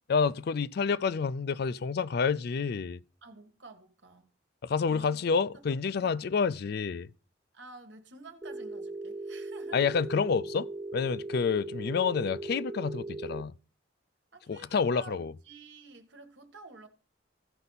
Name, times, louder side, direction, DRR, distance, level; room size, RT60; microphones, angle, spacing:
voice 1, 0.1-3.0 4.6-7.1 9.7-13.5 14.5-15.3, left 5 dB, 55° left, 0.4 m, -29 dB
voice 2, 3.2-4.3 4.9-6.3 7.5-10.0 14.3-16.9, right 3 dB, 65° right, 1.5 m, -51 dB
Telephone, 8.4-13.4, right 2 dB, 15° right, 0.3 m, -39 dB
15.5 x 5.4 x 4.1 m
head